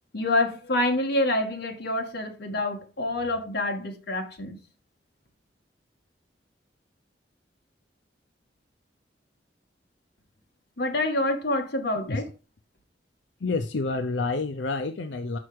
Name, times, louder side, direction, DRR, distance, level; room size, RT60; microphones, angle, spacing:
voice 1, 0.1-4.6 10.8-12.3, left 1 dB, 65° left, 1.4 m, -27 dB
voice 2, 13.4-15.4, left 3 dB, 90° left, 0.6 m, -28 dB
6.0 x 5.8 x 4.7 m
head